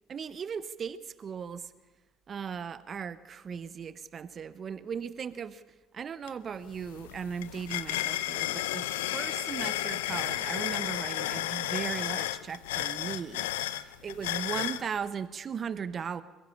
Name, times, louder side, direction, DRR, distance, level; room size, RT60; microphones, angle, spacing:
voice 1, 0.1-1.7 2.3-5.6 5.9-13.8 14.0-16.2, right 7 dB, 45° right, 15 dB, 1.0 m, -37 dB
sound 1, 6.3-6.4 6.7-14.8, left 15 dB, 85° left, 0.7 m, -33 dB
22.5 x 15.5 x 8.7 m, 1.1 s
hypercardioid pair, 65°, 0 cm